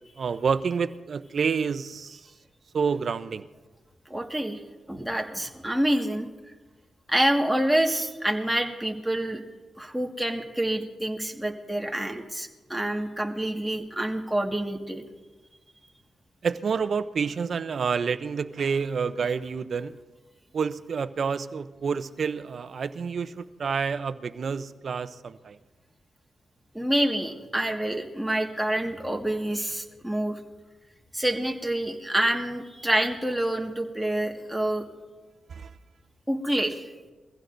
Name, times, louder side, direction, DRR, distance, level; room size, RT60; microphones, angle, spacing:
voice 1, 0.2-2.2 2.7-3.5 16.4-19.9 20.5-25.6 35.5-35.7, right 6 dB, 60° right, 12 dB, 0.7 m, -28 dB
voice 2, 4.1-4.6 4.9-6.3 7.1-9.4 9.8-15.0 26.7-30.4 31.1-34.9 36.3-36.9, right 1 dB, 5° right, 2 dB, 1.8 m, -27 dB
23.0 x 15.5 x 2.7 m, 1.3 s
cardioid pair, 70°, 0 cm